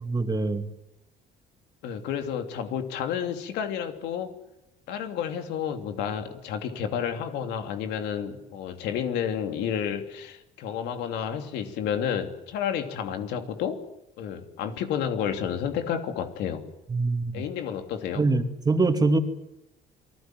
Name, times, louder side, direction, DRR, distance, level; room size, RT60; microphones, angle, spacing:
voice 1, 0.0-0.7 16.9-17.4 18.1-19.2, right 3 dB, 25° right, 6 dB, 2.7 m, -24 dB
voice 2, 1.8-4.3 4.9-13.8 14.2-16.6 17.3-18.2, left 8 dB, 85° left, 6 dB, 3.0 m, -30 dB
28.5 x 20.0 x 7.8 m, 0.88 s
cardioid pair, 110°, 17 cm